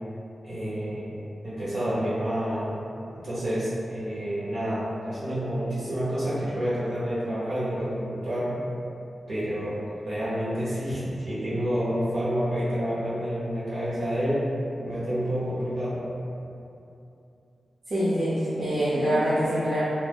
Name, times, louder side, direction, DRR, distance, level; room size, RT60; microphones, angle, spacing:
voice 1, 0.4-2.7 3.1-8.5 9.3-9.8 10.0-14.4 14.8-16.0, equal, 80° right, -10 dB, 1.2 m, -29 dB
voice 2, 17.9-19.8, equal, 55° right, -12 dB, 0.7 m, -25 dB
2.6 x 2.2 x 3.5 m, 2.7 s
wide cardioid pair, 125°, 0 cm